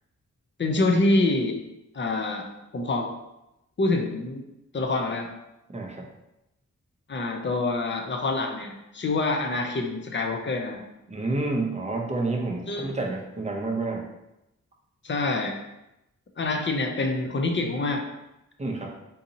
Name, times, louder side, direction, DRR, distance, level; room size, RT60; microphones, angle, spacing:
voice 1, 0.6-1.6 1.9-3.1 3.8-4.4 4.7-5.3 7.1-10.8 12.7-13.0 15.0-15.6 16.4-18.0, left 2 dB, 40° left, 3 dB, 0.5 m, -26 dB
voice 2, 5.7-6.1 11.1-14.1 18.6-18.9, right 2 dB, 20° right, 0 dB, 0.5 m, -29 dB
3.8 x 2.7 x 2.7 m, 0.91 s
wide cardioid pair, 120°, 31 cm